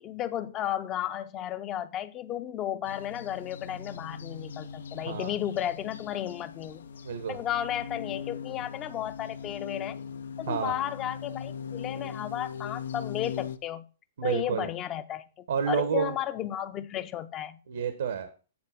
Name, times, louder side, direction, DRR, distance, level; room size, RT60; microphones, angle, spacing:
voice 1, 0.0-6.9 7.3-10.0 10.4-13.9 14.2-17.6, left 11 dB, 25° left, 0.6 m, -34 dB
sound 1, 2.9-13.6, left 7 dB, 85° left, 0.6 m, -40 dB
voice 2, 7.0-7.4 10.5-10.8 14.2-14.7 15.5-16.1 17.7-18.3, right 7 dB, 75° right, 1.1 m, -29 dB
8.7 x 4.1 x 5.8 m
hypercardioid pair, 150°, 0 cm